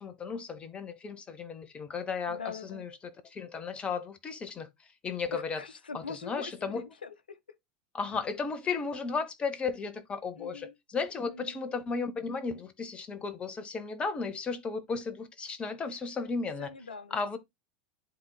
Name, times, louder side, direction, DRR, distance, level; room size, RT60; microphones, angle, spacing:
voice 1, 0.0-2.9 3.2-4.7 5.0-5.6 5.9-6.9 7.9-16.7 17.1-17.4, left 5 dB, 20° left, 1.0 m, -34 dB
voice 2, 2.3-2.8 5.3-7.4 10.4-10.7 11.3-11.6 15.8-16.0 16.6-17.4, left 4 dB, 75° left, 0.9 m, -43 dB
11.0 x 3.7 x 2.3 m
figure-of-eight pair, 85°, 5 cm